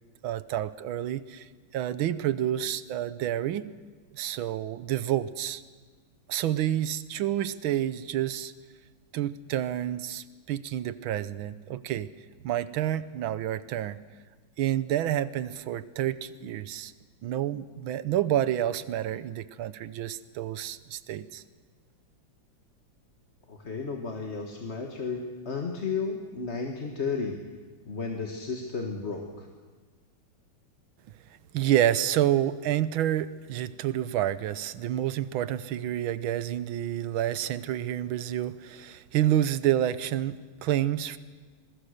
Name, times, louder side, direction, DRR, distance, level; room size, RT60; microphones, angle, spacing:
voice 1, 0.2-3.7 4.1-5.6 6.3-8.5 9.1-12.1 12.4-14.0 14.6-16.9 17.2-21.4 31.5-41.2, right 12 dB, 80° right, 15 dB, 1.7 m, -29 dB
voice 2, 23.5-27.4 27.9-29.5, left 4 dB, 35° left, 2 dB, 1.8 m, -33 dB
26.5 x 21.0 x 6.6 m, 1.4 s
omnidirectional pair, 2.2 m